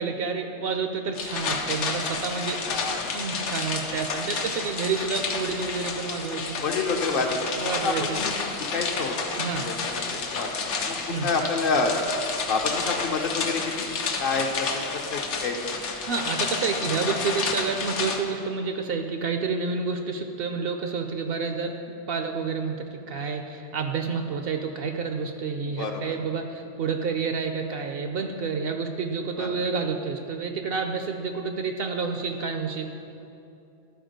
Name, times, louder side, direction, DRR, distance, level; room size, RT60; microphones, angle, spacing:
voice 1, 0.0-2.6 3.1-6.6 7.6-8.2 9.4-9.7 11.1-11.3 16.0-21.7 22.1-32.9, right 5 dB, 65° right, 5 dB, 0.7 m, -29 dB
sound 1, 1.1-18.2, left 4 dB, 80° left, 1.1 m, -30 dB
voice 2, 2.7-3.2 6.6-8.3 8.7-9.2 9.5-10.5 10.8-11.9 12.5-13.9 14.2-15.7 25.6-26.2 28.9-29.0 29.4-29.6, left 4 dB, 55° left, 3 dB, 0.7 m, -28 dB
11.5 x 4.2 x 5.1 m, 2.7 s
omnidirectional pair, 1.2 m